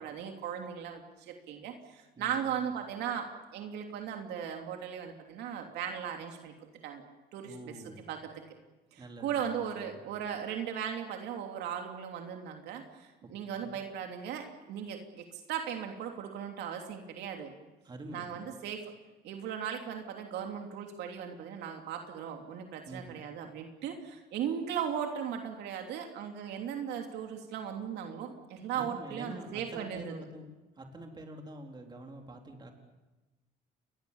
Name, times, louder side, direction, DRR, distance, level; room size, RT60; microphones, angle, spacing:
voice 1, 0.0-6.5 6.8-7.0 7.3-7.7 8.1-8.3 8.9-17.5 18.1-18.8 19.2-30.1, right 8 dB, 80° right, 3 dB, 3.1 m, -37 dB
voice 2, 2.2-2.6 7.4-8.0 9.0-10.0 13.2-13.3 13.6-13.7 17.8-18.3 22.9-23.2 28.7-30.5 30.8-32.7, right 1 dB, 25° right, 2 dB, 3.9 m, -46 dB
29.5 x 22.0 x 7.3 m, 1.1 s
cardioid pair, 110°, 17 cm